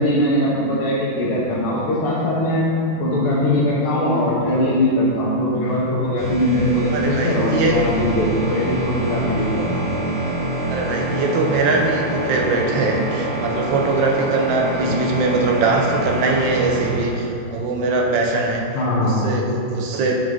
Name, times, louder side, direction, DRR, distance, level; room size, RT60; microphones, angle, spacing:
voice 1, 0.0-2.6 3.0-9.9 14.8-14.9 18.7-19.2, left 1 dB, 90° left, -7 dB, 1.7 m, -20 dB
sound 1, 6.2-17.2, right 2 dB, 85° right, 2.3 m, -26 dB
voice 2, 6.9-7.7 10.7-18.6 19.0-20.1, right 3 dB, 70° right, 0 dB, 1.2 m, -21 dB
5.2 x 5.0 x 3.7 m, 2.5 s
omnidirectional pair, 2.3 m